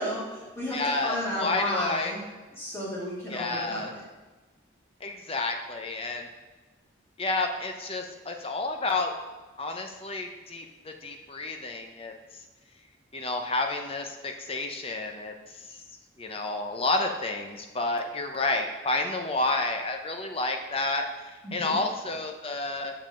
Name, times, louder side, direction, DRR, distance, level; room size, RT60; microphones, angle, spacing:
voice 1, 0.0-2.2 2.6-4.0 21.4-21.8, left 1 dB, 15° left, -8 dB, 2.8 m, -33 dB
voice 2, 0.7-2.1 3.3-3.9 5.0-6.3 7.2-9.1 9.6-12.1 13.1-15.8 16.2-22.9, left 2 dB, 30° left, 4 dB, 0.7 m, -30 dB
7.2 x 5.3 x 6.4 m, 1.2 s
head